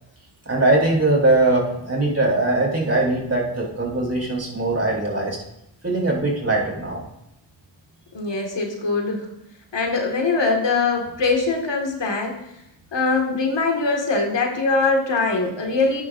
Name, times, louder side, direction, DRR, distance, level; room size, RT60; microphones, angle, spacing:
voice 1, 0.5-5.4 5.8-7.0, right 2 dB, 35° right, -3 dB, 4.4 m, -21 dB
voice 2, 8.1-9.3 9.7-12.4 12.9-16.0, left 3 dB, 70° left, 1 dB, 2.1 m, -22 dB
12.5 x 9.6 x 2.7 m, 0.83 s
cardioid pair, 60°, 45 cm